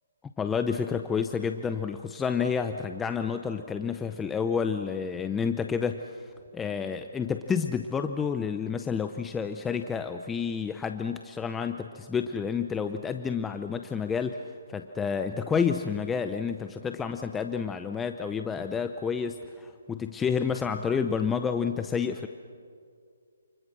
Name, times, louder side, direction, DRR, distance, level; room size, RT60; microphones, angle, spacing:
voice 1, 0.4-6.2 6.5-14.4 14.7-22.3, left 6 dB, 10° left, 7 dB, 0.7 m, -29 dB
29.0 x 28.5 x 6.3 m, 2.2 s
hypercardioid pair, 160°, 0 cm